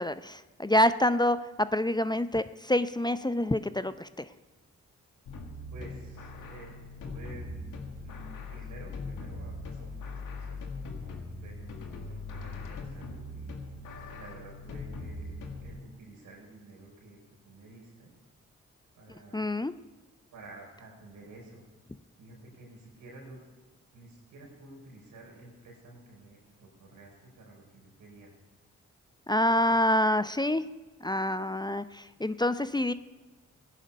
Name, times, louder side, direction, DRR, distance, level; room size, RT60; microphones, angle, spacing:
voice 1, 0.0-4.1 19.3-19.7 29.3-30.6 31.0-31.8 32.2-32.9, left 1 dB, 15° left, 13 dB, 0.6 m, -26 dB
sound 1, 5.3-15.8, left 3 dB, 80° left, 1.7 m, -40 dB
voice 2, 5.7-6.8 7.0-7.7 8.0-11.1 11.4-13.6 14.1-17.2 17.4-18.1 18.9-19.4 20.3-21.6 22.2-28.3 29.5-29.8, right 2 dB, 85° right, -1 dB, 4.5 m, -51 dB
16.5 x 10.0 x 5.5 m, 1.3 s
supercardioid pair, 45°, 31 cm